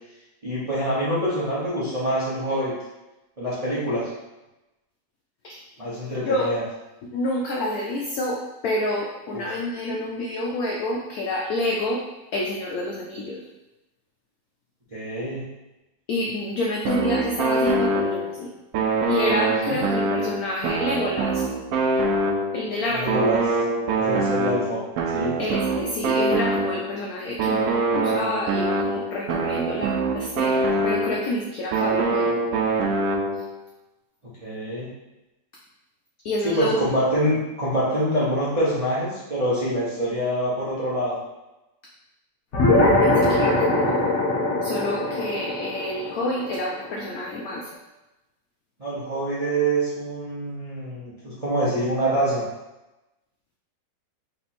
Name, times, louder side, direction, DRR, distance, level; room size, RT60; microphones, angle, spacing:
voice 1, 0.4-2.7 3.4-4.1 5.8-6.6 9.3-9.4 14.9-15.4 22.9-23.4 23.9-25.4 34.4-34.9 36.4-41.2 48.8-52.4, right 1 dB, 30° right, -9 dB, 0.6 m, -25 dB
voice 2, 6.2-6.6 7.0-12.0 12.3-13.5 16.1-18.5 19.1-21.5 22.5-23.2 25.4-32.4 33.3-33.4 36.2-36.8 42.7-44.0 44.6-47.7, left 1 dB, 70° left, -2 dB, 0.9 m, -28 dB
sound 1, 16.8-18.4 18.7-22.7 23.1-27.0 27.4-31.3 31.7-33.5, right 2 dB, 80° right, 0.8 m, -24 dB
sound 2, 42.5-47.3, left 2 dB, 45° left, 1.0 m, -21 dB
3.4 x 3.0 x 4.2 m, 0.99 s
omnidirectional pair, 2.0 m